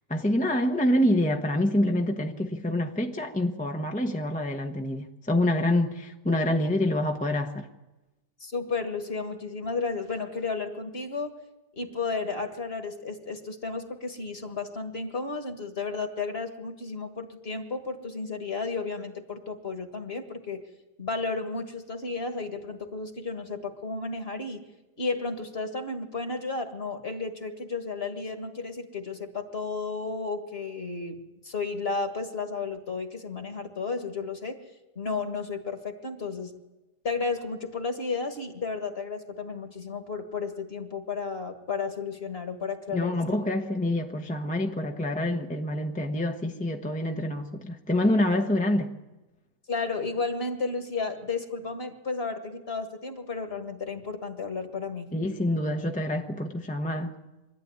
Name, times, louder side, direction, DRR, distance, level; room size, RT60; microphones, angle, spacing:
voice 1, 0.1-7.7 42.9-48.9 55.1-57.1, left 1 dB, 5° left, 0.9 m, -26 dB
voice 2, 8.4-11.4 11.7-20.7 21.0-24.6 25.0-34.6 35.0-36.5 37.0-43.2 49.7-55.1, left 4 dB, 35° left, 1.9 m, -33 dB
24.5 x 13.0 x 9.6 m
omnidirectional pair, 1.8 m